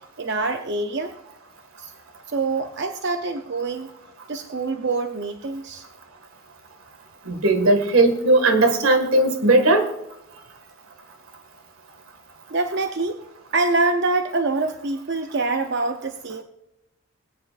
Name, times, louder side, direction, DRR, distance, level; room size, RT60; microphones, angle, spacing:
voice 1, 0.2-1.1 1.8-1.9 2.3-3.9 4.3-5.9 12.5-13.2 13.5-16.4, right 3 dB, 50° right, 6 dB, 0.6 m, -25 dB
voice 2, 7.3-9.8, right 2 dB, 80° right, 6 dB, 1.8 m, -17 dB
20.5 x 9.4 x 2.5 m, 0.85 s
head